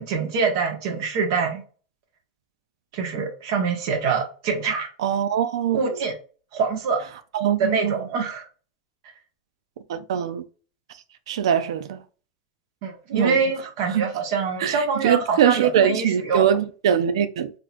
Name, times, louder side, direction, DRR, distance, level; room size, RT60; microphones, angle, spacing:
voice 1, 0.0-1.6 2.9-4.9 5.7-6.1 6.5-7.0 7.6-8.4 12.8-16.4, right 5 dB, 60° right, 1.4 m, -25 dB
voice 2, 5.0-6.0 7.3-8.0 9.9-10.4 11.3-12.0 13.1-13.4 13.9-14.1 14.6-17.5, right 9 dB, 80° right, 0.4 m, -22 dB
3.9 x 3.0 x 2.5 m
supercardioid pair, 135°, 3 cm